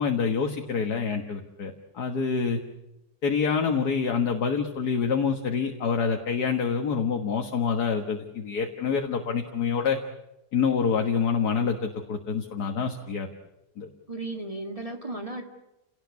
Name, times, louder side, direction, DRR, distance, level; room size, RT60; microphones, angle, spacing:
voice 1, 0.0-2.6 3.2-10.0 10.5-13.3 13.8-13.9, left 6 dB, 75° left, 3 dB, 2.1 m, -26 dB
voice 2, 14.1-15.4, right 2 dB, 20° right, 3 dB, 2.1 m, -35 dB
29.0 x 18.5 x 8.4 m, 0.96 s
omnidirectional pair, 1.7 m